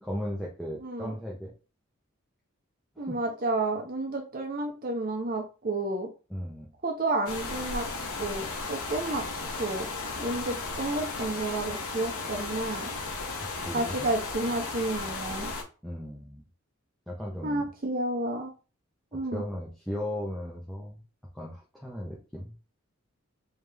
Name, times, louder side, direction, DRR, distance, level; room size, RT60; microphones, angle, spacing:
voice 1, 0.0-1.5 3.0-3.2 6.3-6.7 13.5-14.1 15.8-16.4 17.1-17.6 19.3-21.0 21.3-22.5, equal, ahead, -3 dB, 0.7 m, -36 dB
voice 2, 0.8-1.1 3.0-6.1 6.8-7.9 8.2-9.2 9.6-9.9 10.2-12.9 13.7-15.5 17.4-18.5 19.1-19.4, right 2 dB, 40° right, 2 dB, 0.7 m, -31 dB
sound 1, 7.3-15.6, left 3 dB, 85° left, 1.0 m, -35 dB
3.4 x 3.3 x 3.3 m, 0.34 s
head